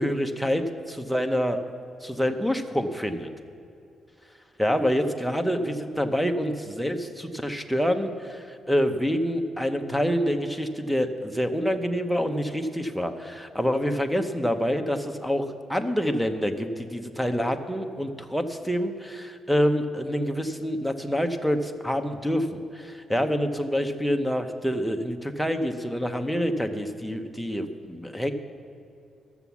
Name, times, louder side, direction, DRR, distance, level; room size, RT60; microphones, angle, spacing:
voice 1, 0.0-1.6 2.0-3.3 4.6-28.3, equal, ahead, 8 dB, 0.7 m, -27 dB
12.5 x 7.1 x 7.1 m, 2.5 s
cardioid pair, 125°, 0 cm